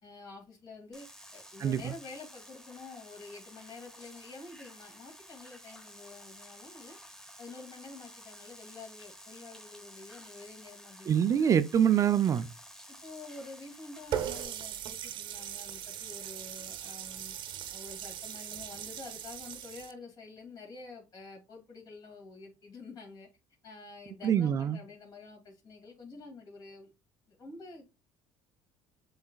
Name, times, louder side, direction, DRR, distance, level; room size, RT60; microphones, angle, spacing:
voice 1, 0.0-7.0 7.4-11.4 12.9-17.3 17.7-23.3 23.6-26.9 27.3-28.0, left 3 dB, 50° left, 2.4 m, -48 dB
sound 1, 0.9-14.4, equal, 5° left, 0.9 m, -52 dB
voice 2, 1.6-1.9 11.1-12.5 24.2-24.8, right 9 dB, 35° right, 0.3 m, -25 dB
Water tap faucet, 14.1-19.9, right 10 dB, 60° right, 0.7 m, -39 dB
7.1 x 3.3 x 2.3 m
supercardioid pair, 90°, 9 cm